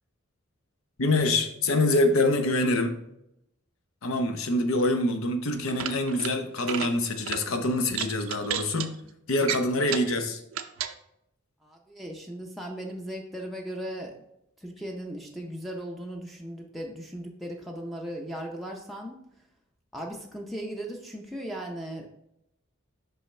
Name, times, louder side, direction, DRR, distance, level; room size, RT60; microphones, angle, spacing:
voice 1, 1.0-3.0 4.0-8.9 9.3-10.4, left 2 dB, 80° left, 7 dB, 0.8 m, -25 dB
sound 1, 5.6-6.3 6.6-6.9 7.3-7.4 7.9-8.9 9.4-10.1 10.5-10.9, right 9 dB, 75° right, 0.5 m, -32 dB
voice 2, 11.6-14.1 14.6-19.2 19.9-22.1, right 1 dB, ahead, 0 dB, 0.5 m, -37 dB
5.6 x 5.6 x 3.2 m, 0.80 s
head